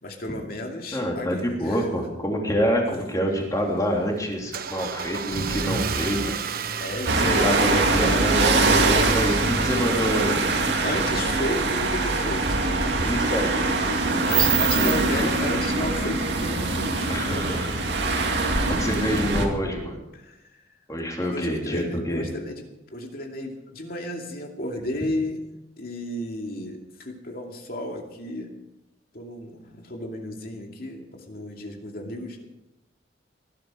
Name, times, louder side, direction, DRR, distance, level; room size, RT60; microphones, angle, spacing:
voice 1, 0.0-1.9 6.8-8.1 8.9-9.4 10.1-10.4 10.8-12.6 14.2-17.3 20.1-20.6 21.2-22.5 22.9-25.4 25.8-28.5 29.1-32.5, left 1 dB, 55° left, 2 dB, 2.4 m, -33 dB
voice 2, 0.9-6.4 7.2-10.4 13.0-14.5 14.7-14.9 17.1-17.9 18.4-20.0 20.9-22.3, equal, 20° left, 0 dB, 3.2 m, -27 dB
Car / Engine starting, 3.3-11.4, right 4 dB, 55° right, 1.0 m, -32 dB
sound 1, 7.1-19.5, right 3 dB, 70° right, 2.2 m, -23 dB
19.0 x 12.0 x 5.0 m, 0.89 s
head